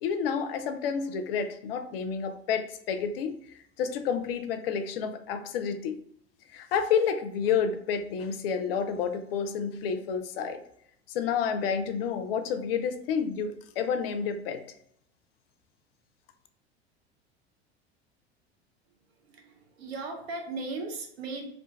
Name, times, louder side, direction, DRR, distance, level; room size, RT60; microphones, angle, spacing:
voice 1, 0.0-3.4 3.8-6.0 6.5-10.6 11.1-14.6, left 6 dB, 65° left, 8 dB, 0.5 m, -29 dB
voice 2, 19.1-21.5, right 3 dB, 70° right, 2 dB, 0.7 m, -37 dB
2.6 x 2.2 x 3.2 m, 0.70 s
figure-of-eight pair, 80°, 32 cm